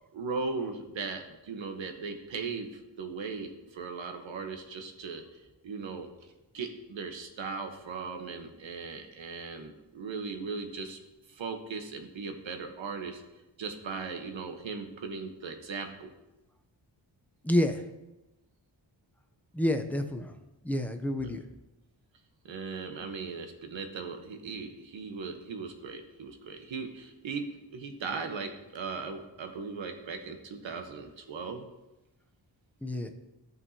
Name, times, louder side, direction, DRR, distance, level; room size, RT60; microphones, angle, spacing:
voice 1, 0.1-11.0 11.3-13.2 13.6-16.1 21.1-21.3 22.4-27.5 27.7-31.7, right 4 dB, 80° right, 6 dB, 1.0 m, -38 dB
voice 2, 17.4-17.8 19.5-20.3 20.6-21.4 32.8-33.1, left 1 dB, 5° left, 5 dB, 0.5 m, -28 dB
14.0 x 5.3 x 2.8 m, 1.0 s
wide cardioid pair, 150°, 45 cm